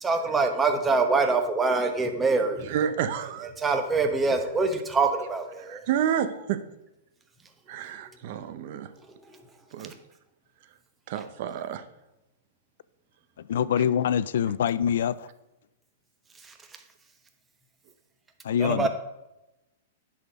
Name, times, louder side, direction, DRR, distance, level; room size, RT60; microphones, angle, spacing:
voice 1, 0.0-2.7 3.6-5.8 16.5-16.6 18.6-18.9, right 3 dB, 15° right, 5 dB, 1.0 m, -24 dB
voice 2, 2.6-3.5 5.6-6.6 7.7-8.9 9.7-9.9 11.1-11.8, right 9 dB, 55° right, 10 dB, 0.7 m, -29 dB
voice 3, 13.5-15.3 18.4-18.9, left 8 dB, 70° left, 17 dB, 0.3 m, -24 dB
9.8 x 4.2 x 5.3 m, 0.94 s
hypercardioid pair, 140°, 0 cm